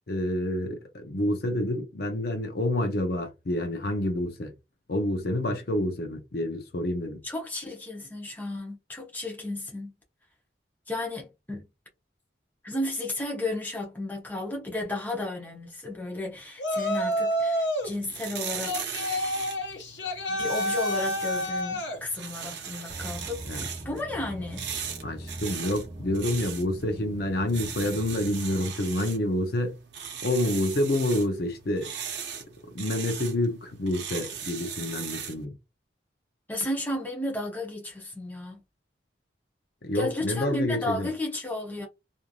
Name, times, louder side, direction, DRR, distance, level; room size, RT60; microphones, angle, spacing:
voice 1, 0.1-4.5 4.9-7.2 23.5-23.6 25.0-29.7 30.2-31.9 32.6-35.5 39.8-41.1, left 1 dB, 55° left, 0.6 m, -28 dB
voice 2, 7.2-9.9 10.9-11.7 12.6-18.7 20.3-24.7 36.5-38.6 39.9-41.9, left 2 dB, 10° left, 0.8 m, -33 dB
Yell, 16.6-17.9 18.6-22.0, equal, 80° left, 0.8 m, -29 dB
sound 1, 17.8-35.4, right 7 dB, 70° right, 0.7 m, -39 dB
sound 2, 22.9-28.7, right 1 dB, 25° right, 0.4 m, -42 dB
3.1 x 2.6 x 2.3 m
head